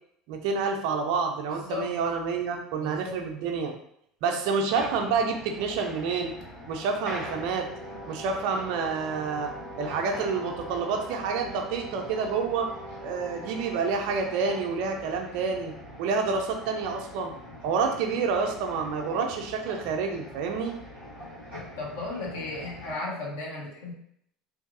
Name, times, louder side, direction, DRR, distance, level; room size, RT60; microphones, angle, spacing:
voice 1, 0.3-3.7 4.2-6.3 6.7-7.7 8.1-9.5 9.8-12.7 13.0-17.3 17.6-20.7, right 5 dB, 60° right, 3 dB, 0.4 m, -28 dB
voice 2, 1.5-1.9 2.7-3.2 21.8-23.9, left 3 dB, 65° left, -4 dB, 1.0 m, -35 dB
sound 1, 4.7-23.0, equal, 80° left, 1.5 m, -43 dB
Brass instrument, 7.2-14.2, right 1 dB, 35° left, 1.2 m, -43 dB
3.0 x 2.5 x 2.5 m, 0.71 s
figure-of-eight pair, 65°, 0 cm